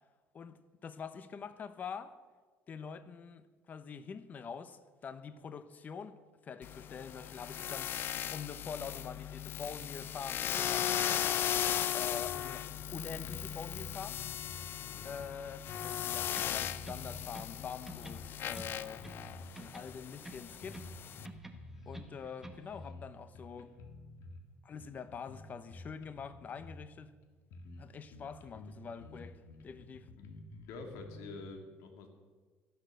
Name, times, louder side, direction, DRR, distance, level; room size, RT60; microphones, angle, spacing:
voice 1, 0.3-2.2 2.7-10.9 11.9-14.2 15.0-19.1 19.6-20.9 21.9-23.8 24.6-27.1 27.8-30.2, left 6 dB, 35° left, 0.9 m, -45 dB
sound 1, 6.6-21.3, left 11 dB, 50° left, 0.5 m, -37 dB
sound 2, 12.2-12.5 12.8-12.9 13.1-14.7 15.2-17.3 17.6-19.5 19.9-20.1 20.5-22.1 22.4-23.1 23.3-24.4 24.8-26.9 27.2-27.3 27.5-27.8 28.1-31.4, left 2 dB, 65° left, 1.9 m, -50 dB
voice 2, 14.8-15.2 30.2-30.3 30.6-32.1, left 3 dB, 85° left, 2.5 m, -47 dB
sound 3, 16.3-17.6 17.9-19.3 19.6-21.0 21.2-22.7, right 2 dB, 5° right, 1.3 m, -51 dB
13.5 x 11.0 x 6.6 m
cardioid pair, 125°, 5 cm